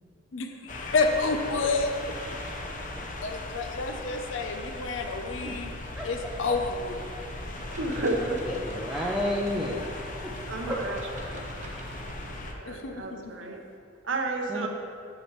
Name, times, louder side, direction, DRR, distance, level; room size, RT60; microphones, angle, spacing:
voice 1, 0.3-1.9 3.2-5.7 6.0-7.0 12.6-13.6, left 3 dB, 80° left, 5 dB, 0.7 m, -29 dB
sound 1, 0.7-12.5, left 2 dB, 45° left, 0.7 m, -38 dB
voice 2, 6.0-6.5 7.2-8.1 8.4-9.9 10.2-10.4 10.6-10.8 14.5-14.7, left 1 dB, 5° right, -4 dB, 0.6 m, -33 dB
sound 2, 7.5-12.5, right 1 dB, 40° right, 1.0 m, -47 dB
voice 3, 7.8-8.4 10.5-11.5 12.5-13.6 14.0-14.7, right 2 dB, 80° right, 3 dB, 0.9 m, -32 dB
8.5 x 8.3 x 3.2 m, 2.3 s
head